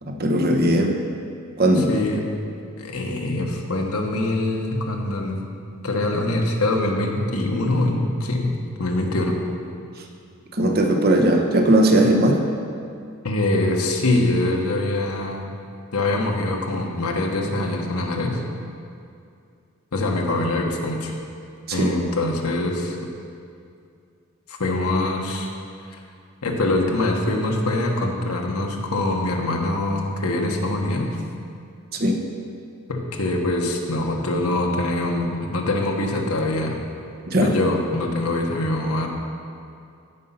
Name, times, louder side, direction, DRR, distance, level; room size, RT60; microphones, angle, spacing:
voice 1, 0.0-1.0 1.6-1.9 10.5-12.4 21.7-21.9 31.9-32.2 37.3-37.5, right 1 dB, 45° right, 2 dB, 1.0 m, -18 dB
voice 2, 1.8-2.3 2.8-5.4 5.8-9.4 13.2-15.4 15.9-18.4 19.9-21.1 21.7-23.1 24.5-25.5 25.9-26.0 26.4-31.2 32.9-36.8 37.4-39.1, left 2 dB, 80° left, 1 dB, 1.2 m, -24 dB
15.5 x 5.4 x 5.6 m, 2.4 s
head